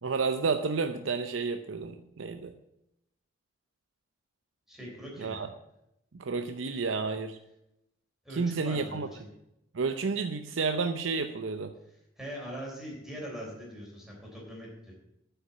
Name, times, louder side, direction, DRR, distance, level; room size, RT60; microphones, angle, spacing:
voice 1, 0.0-2.5 5.2-5.5 6.1-7.4 8.3-9.1 9.7-11.7, right 4 dB, 80° right, 8 dB, 0.6 m, -31 dB
voice 2, 4.7-5.4 8.2-9.0 12.2-14.9, equal, ahead, -3 dB, 3.6 m, -41 dB
9.7 x 5.7 x 8.3 m, 0.82 s
head